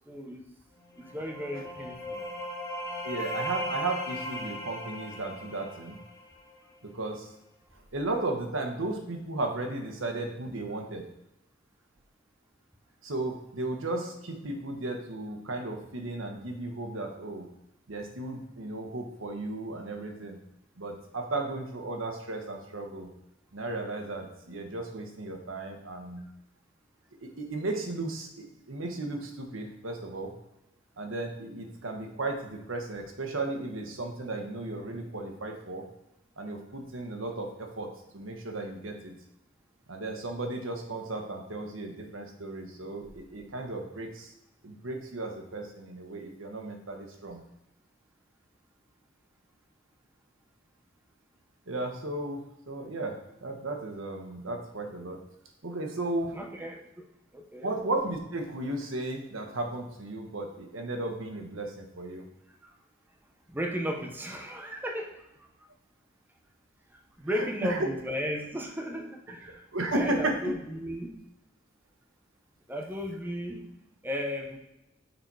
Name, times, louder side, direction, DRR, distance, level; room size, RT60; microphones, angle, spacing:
voice 1, 0.1-0.5 1.0-2.2 56.3-56.8 57.3-57.8 62.7-62.8 63.5-65.5 67.2-69.6 69.9-71.2 72.7-73.7 74.0-74.6, equal, 10° right, 2 dB, 0.8 m, -35 dB
sound 1, 0.9-6.6, equal, 15° left, 1.1 m, -37 dB
voice 2, 3.0-6.0 6.8-7.3 7.9-11.1 13.0-17.5 17.9-20.4 20.8-23.1 23.5-26.2 27.2-30.3 31.0-35.8 36.4-37.9 38.1-39.1 39.9-44.3 44.6-47.4 51.7-55.2 55.6-56.4 57.6-62.2 67.3-67.8 69.7-70.4, right 2 dB, 85° right, 3 dB, 1.2 m, -35 dB
6.7 x 4.2 x 4.8 m, 0.88 s
head